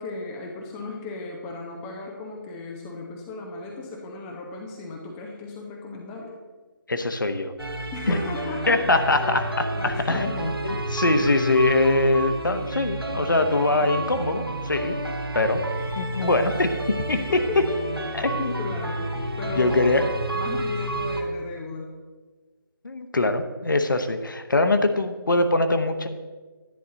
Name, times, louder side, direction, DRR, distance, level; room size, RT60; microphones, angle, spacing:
voice 1, 0.0-6.3 7.9-8.8 9.7-10.5 17.1-17.8 18.3-19.9 20.3-21.9, left 3 dB, 5° left, -1 dB, 0.4 m, -36 dB
voice 2, 6.9-7.5 8.1-8.2 8.7-15.0 15.3-15.6 15.9-17.2 18.1-18.6 19.6-20.1 22.8-26.1, left 2 dB, 60° left, 8 dB, 1.0 m, -23 dB
sound 1, 7.6-21.2, right 1 dB, 90° right, 1.7 m, -30 dB
10.5 x 10.5 x 3.9 m, 1.3 s
figure-of-eight pair, 155°, 12 cm